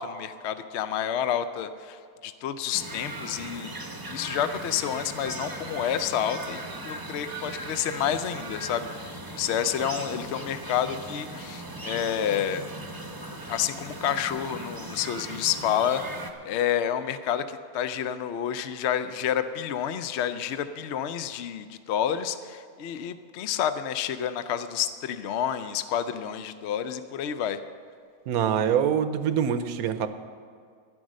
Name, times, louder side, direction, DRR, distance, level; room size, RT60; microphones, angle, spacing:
voice 1, 0.0-3.8 4.1-12.6 13.5-16.0 16.4-27.6, left 9 dB, 60° left, 11 dB, 0.7 m, -29 dB
sound 1, 2.7-16.3, right 2 dB, 20° right, 0.8 m, -38 dB
voice 2, 28.3-30.1, right 8 dB, 80° right, 11 dB, 1.2 m, -24 dB
12.0 x 10.5 x 6.3 m, 2.2 s
omnidirectional pair, 1.5 m